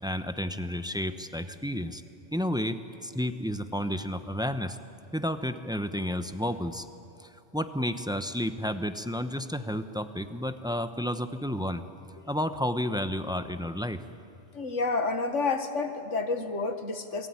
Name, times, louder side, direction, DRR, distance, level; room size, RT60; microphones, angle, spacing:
voice 1, 0.0-2.0 2.3-4.8 5.1-6.9 7.2-11.8 12.3-14.0, equal, 5° right, 9 dB, 0.8 m, -31 dB
voice 2, 14.5-17.3, left 3 dB, 85° left, 7 dB, 2.0 m, -29 dB
28.5 x 20.0 x 9.7 m, 2.7 s
omnidirectional pair, 1.2 m